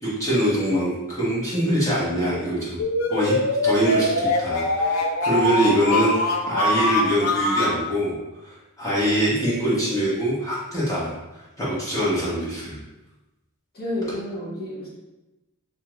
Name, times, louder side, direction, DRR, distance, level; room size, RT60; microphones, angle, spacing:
voice 1, 0.0-2.8 3.1-3.4 3.6-8.1 8.4-11.1 11.6-12.8, equal, 15° left, -8 dB, 1.1 m, -24 dB
sound 1, 2.8-7.8, left 2 dB, 85° left, 0.5 m, -23 dB
voice 2, 13.7-14.9, left 1 dB, 45° left, -6 dB, 1.1 m, -30 dB
3.5 x 2.7 x 3.0 m, 1.0 s
head